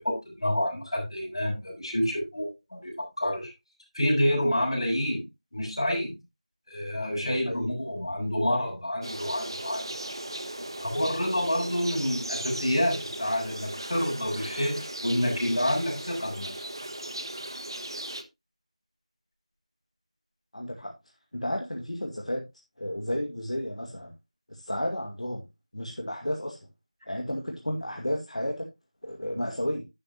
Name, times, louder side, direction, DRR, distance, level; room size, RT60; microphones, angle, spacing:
voice 1, 0.0-3.5 3.9-5.2 5.5-6.1 6.7-9.9 10.8-16.7, equal, 50° left, 7.0 m, -28 dB
sound 1, 9.0-18.2, right 1 dB, 40° right, 1.0 m, -37 dB
voice 2, 20.5-20.9 21.3-22.5 22.8-24.1 24.5-25.4 25.7-26.7 27.1-28.7 29.0-29.8, left 1 dB, 70° left, 2.1 m, -32 dB
11.0 x 8.5 x 2.9 m
figure-of-eight pair, 175°, 4 cm